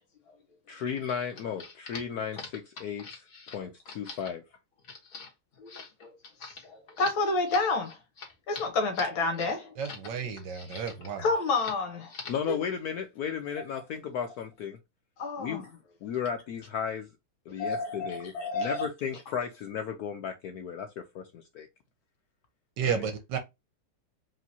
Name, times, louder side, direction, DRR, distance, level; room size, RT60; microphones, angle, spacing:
voice 1, 0.7-4.4 12.3-14.8 15.4-15.6 16.0-17.1 17.5-21.7 22.8-23.0, left 7 dB, 90° left, 0.8 m, -35 dB
sound 1, 1.0-10.1 10.4-11.1 11.5-11.8 12.1-12.5, left 4 dB, 45° left, 1.5 m, -44 dB
voice 2, 6.6-8.0 8.5-9.7 10.7-10.8 11.2-12.1 12.5-12.6 15.2-15.6 17.6-18.9, left 3 dB, 70° left, 1.7 m, -29 dB
voice 3, 9.8-11.3 22.8-23.4, right 7 dB, 65° right, 1.2 m, -32 dB
4.8 x 3.2 x 2.7 m
omnidirectional pair, 2.3 m